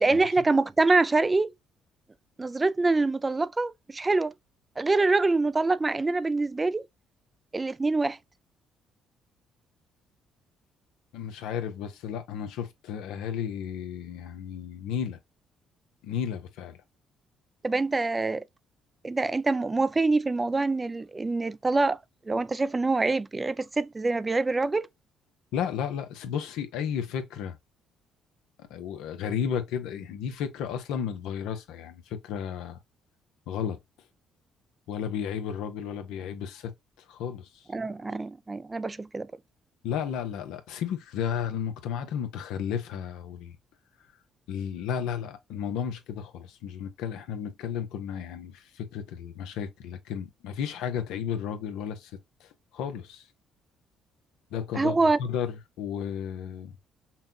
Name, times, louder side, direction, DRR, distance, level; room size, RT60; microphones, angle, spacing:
voice 1, 0.0-1.5 2.4-4.3 4.8-6.8 7.5-8.2 17.6-18.4 19.0-22.0 22.3-24.9 37.7-39.3 54.8-55.2, right 3 dB, 25° right, 0.3 m, -25 dB
voice 2, 11.1-15.2 16.0-16.8 25.5-27.6 28.6-32.8 33.5-33.8 34.9-36.7 37.1-37.5 39.8-43.6 44.5-52.1 52.4-53.2 54.5-56.7, left 8 dB, 85° left, 0.9 m, -33 dB
5.7 x 2.3 x 2.7 m
supercardioid pair, 75°, 0 cm